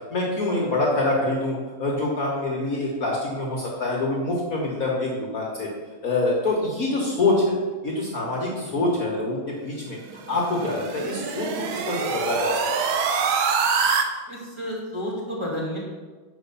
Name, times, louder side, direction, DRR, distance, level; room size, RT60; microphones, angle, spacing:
voice 1, 0.1-5.7 6.0-7.4 7.8-10.0 10.3-11.5 11.9-13.0, left 2 dB, 50° left, -3 dB, 1.5 m, -25 dB
sound 1, 10.1-14.0, right 5 dB, 90° right, 1.6 m, -25 dB
voice 2, 14.3-15.8, equal, 15° right, -6 dB, 2.1 m, -31 dB
5.8 x 5.6 x 6.9 m, 1.4 s
omnidirectional pair, 2.2 m